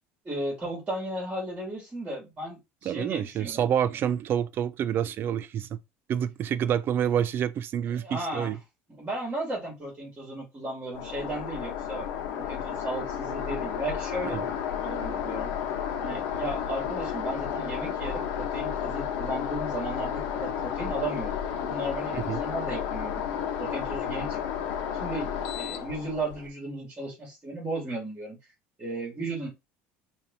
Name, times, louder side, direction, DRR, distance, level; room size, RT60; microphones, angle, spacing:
voice 1, 0.2-3.6 8.0-8.5 9.0-12.1 12.3-14.5 14.8-15.5 16.0-23.2 23.6-24.4 24.9-25.3 25.6-28.4 28.8-29.5, right 2 dB, 20° right, 2.3 m, -35 dB
voice 2, 2.8-5.8 6.1-8.6 14.2-14.5 22.1-22.4, right 9 dB, 40° right, 0.4 m, -28 dB
sound 1, 10.9-26.5, left 8 dB, 80° left, 0.9 m, -32 dB
5.1 x 2.7 x 2.7 m
cardioid pair, 130°, 5 cm